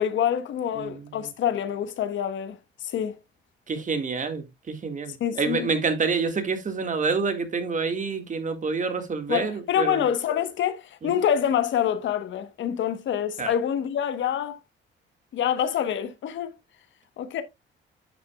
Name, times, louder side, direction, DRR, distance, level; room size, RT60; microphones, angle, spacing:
voice 1, 0.0-2.6 2.8-3.2 5.2-5.7 9.3-14.6 15.3-16.5 17.2-17.4, left 9 dB, 70° left, 1.2 m, -26 dB
voice 2, 0.8-1.1 3.7-10.0 11.0-11.1 13.4-13.5, right 4 dB, 40° right, 1.9 m, -27 dB
10.5 x 6.0 x 2.3 m
cardioid pair, 90°, 20 cm